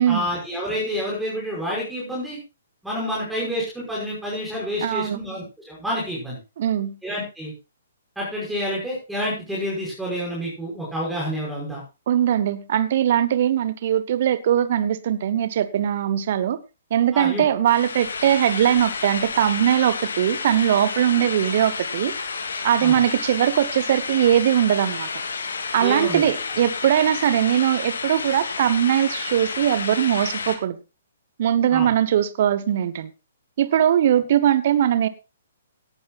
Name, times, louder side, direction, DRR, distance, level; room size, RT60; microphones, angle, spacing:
voice 1, 0.1-2.4 2.8-6.4 7.0-7.5 8.2-11.8 17.1-17.4 22.8-23.0 25.8-26.3 31.7-31.9, equal, 5° right, 5.7 m, -28 dB
voice 2, 4.8-5.2 6.6-6.9 12.1-16.6 16.9-22.1 22.6-25.1 25.7-30.8 31.4-33.1 33.6-35.1, right 10 dB, 50° right, 1.0 m, -20 dB
sound 1, 17.7-30.6, left 5 dB, 70° left, 2.5 m, -30 dB
17.5 x 11.5 x 2.4 m
figure-of-eight pair, 125°, 0 cm